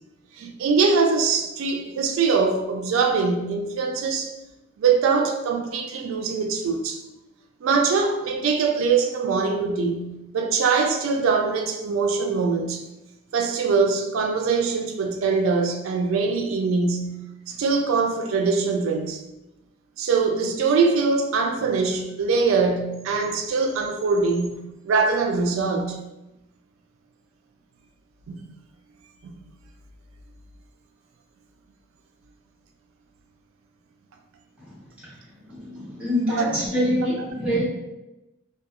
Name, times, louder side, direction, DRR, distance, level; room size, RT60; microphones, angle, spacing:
voice 1, 0.4-4.3 4.8-7.0 7.6-12.8 13.3-19.2 20.0-26.0 28.3-28.4 29.2-29.4 36.3-36.5, right 4 dB, 70° right, 4 dB, 0.3 m, -23 dB
voice 2, 35.5-37.6, equal, 5° right, -10 dB, 0.7 m, -25 dB
2.3 x 2.2 x 2.8 m, 0.98 s
head